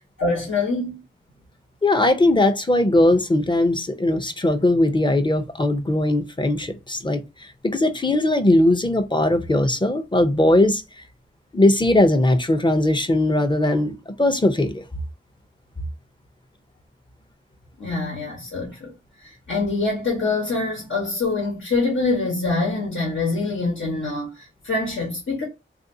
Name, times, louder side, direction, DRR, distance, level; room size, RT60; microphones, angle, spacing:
voice 1, 0.2-1.0 17.8-18.9 19.2-25.4, left 3 dB, 75° left, 1.1 m, -25 dB
voice 2, 1.8-10.8 11.5-14.8, left 1 dB, 20° left, 0.6 m, -19 dB
3.4 x 2.5 x 2.6 m
wide cardioid pair, 55°, 21 cm